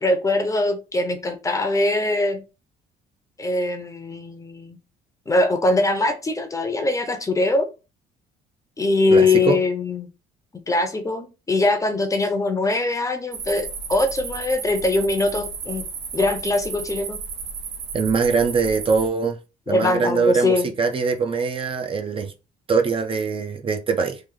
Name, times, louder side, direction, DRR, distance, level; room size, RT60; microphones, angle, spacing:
voice 1, 0.0-2.4 3.4-4.8 5.3-7.7 8.8-10.1 10.7-15.9 16.1-17.2 19.7-20.7, left 2 dB, 20° left, 0.7 m, -22 dB
voice 2, 9.1-9.6 17.9-19.4 19.7-22.3 22.7-24.2, right 5 dB, 30° right, 0.6 m, -22 dB
sound 1, 13.3-19.1, right 5 dB, 70° right, 1.1 m, -33 dB
3.3 x 2.5 x 3.8 m
cardioid pair, 110°, 17 cm